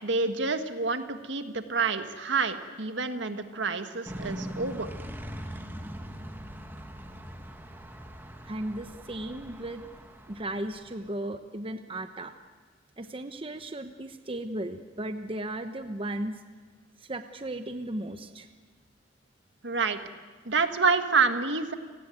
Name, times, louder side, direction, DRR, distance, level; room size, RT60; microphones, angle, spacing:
voice 1, 0.0-4.9 19.6-20.0 20.5-21.7, right 4 dB, 70° right, 8 dB, 1.8 m, -28 dB
sound 1, 4.1-11.0, equal, 10° right, 1.9 m, -41 dB
voice 2, 8.4-9.8 10.3-12.3 13.0-16.4 17.0-18.5, right 1 dB, 30° right, 8 dB, 1.0 m, -36 dB
30.0 x 19.0 x 9.2 m, 1.5 s
head